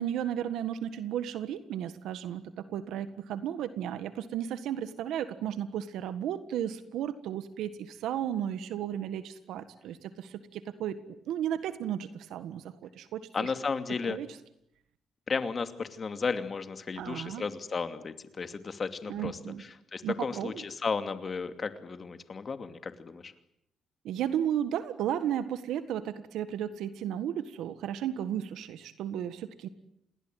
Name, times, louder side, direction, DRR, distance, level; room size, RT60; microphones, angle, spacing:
voice 1, 0.0-13.5 14.0-14.3 17.0-17.4 19.1-19.6 20.0-20.6 24.0-29.7, right 10 dB, 85° right, 12 dB, 1.6 m, -34 dB
voice 2, 13.3-14.2 15.3-23.3, left 5 dB, 40° left, 9 dB, 2.6 m, -34 dB
28.0 x 20.5 x 9.3 m, 0.78 s
cardioid pair, 90°, 0 cm